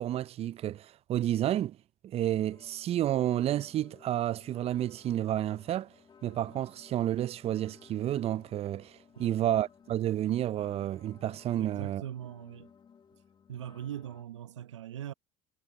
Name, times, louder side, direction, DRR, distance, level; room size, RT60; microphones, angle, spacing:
voice 1, 0.0-1.8 2.0-5.9 6.2-12.0, right 12 dB, 45° right, 0.6 m, -30 dB
sound 1, 2.3-14.2, left 7 dB, 30° left, 1.9 m, -58 dB
voice 2, 9.2-9.5 11.6-12.7 13.5-15.1, right 10 dB, 85° right, 0.9 m, -41 dB
hypercardioid pair, 70°, 15 cm